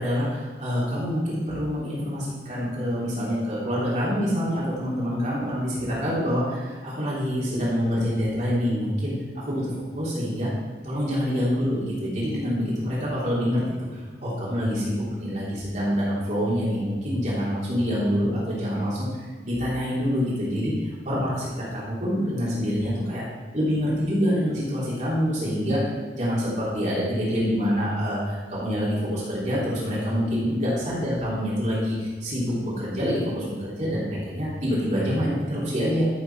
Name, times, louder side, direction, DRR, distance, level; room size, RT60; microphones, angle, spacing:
voice 1, 0.0-10.5 10.8-13.6 14.2-23.2 23.5-25.8 26.1-36.0, equal, 45° right, -8 dB, 3.3 m, -26 dB
13.5 x 7.0 x 4.8 m, 1.3 s
head